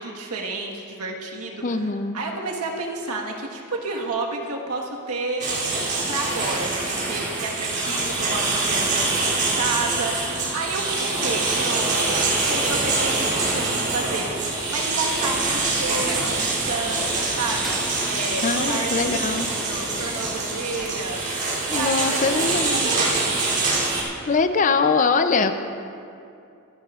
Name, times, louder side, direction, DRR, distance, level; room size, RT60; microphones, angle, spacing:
voice 1, 0.0-5.4 6.1-17.7 18.1-21.2 21.7-23.4, right 3 dB, 90° right, 0 dB, 1.4 m, -31 dB
voice 2, 1.6-2.2 18.4-19.5 21.7-22.9 24.3-25.5, left 4 dB, 35° left, 9 dB, 0.5 m, -22 dB
sound 1, 5.4-24.0, right 3 dB, 45° right, 2.9 m, -25 dB
sound 2, 12.4-20.9, equal, ahead, 2.0 m, -38 dB
24.0 x 11.0 x 2.4 m, 2.5 s
head